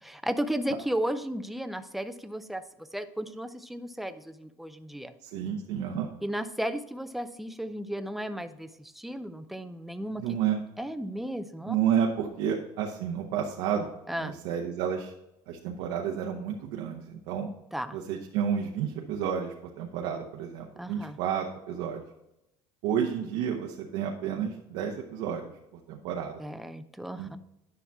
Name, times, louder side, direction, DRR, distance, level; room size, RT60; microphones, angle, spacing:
voice 1, 0.0-5.1 6.2-10.2 10.8-11.8 14.1-14.4 17.7-18.0 20.8-21.2 26.4-27.4, equal, ahead, 10 dB, 0.5 m, -34 dB
voice 2, 5.2-6.1 10.2-10.6 11.7-13.9 14.2-15.1 15.5-17.5 17.9-22.0 22.8-26.4 27.2-27.4, right 8 dB, 80° right, -1 dB, 1.0 m, -31 dB
10.0 x 5.8 x 3.5 m, 0.88 s
cardioid pair, 140°, 11 cm